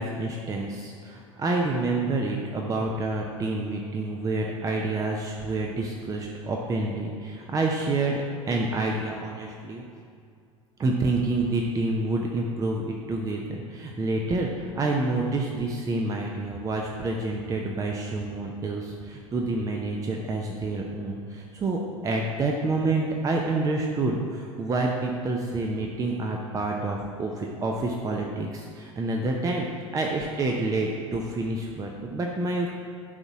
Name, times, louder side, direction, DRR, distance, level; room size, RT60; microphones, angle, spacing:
voice 1, 0.0-9.8 10.8-29.7 29.9-32.7, right 2 dB, 20° right, 0 dB, 0.7 m, -28 dB
10.5 x 4.0 x 4.7 m, 2.3 s
figure-of-eight pair, 80°, 17 cm